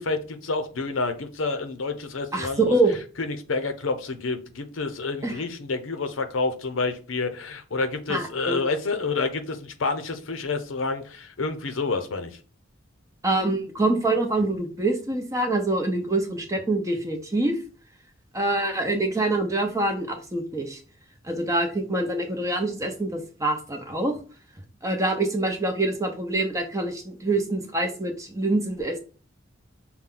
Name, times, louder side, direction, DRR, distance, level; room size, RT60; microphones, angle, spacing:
voice 1, 0.0-2.7 3.2-12.3, left 3 dB, 85° left, 8 dB, 0.7 m, -29 dB
voice 2, 2.3-3.0 5.2-5.3 8.1-8.7 13.2-17.6 18.3-20.8 21.3-24.2 24.8-29.0, right 2 dB, 15° right, 4 dB, 0.8 m, -25 dB
5.8 x 2.2 x 3.7 m, 0.38 s
head